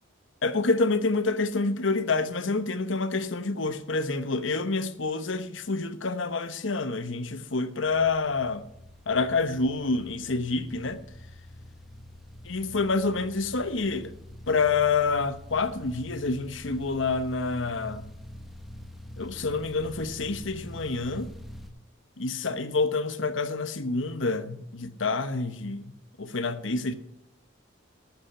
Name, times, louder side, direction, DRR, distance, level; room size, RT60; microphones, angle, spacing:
voice 1, 0.4-8.6 9.1-11.0 12.5-14.1 14.5-18.1 19.2-21.3 22.2-25.9 26.2-26.9, left 3 dB, 80° left, 1.0 m, -27 dB
sound 1, 7.8-21.7, left 1 dB, ahead, 1.0 m, -45 dB
12.0 x 8.6 x 6.5 m
head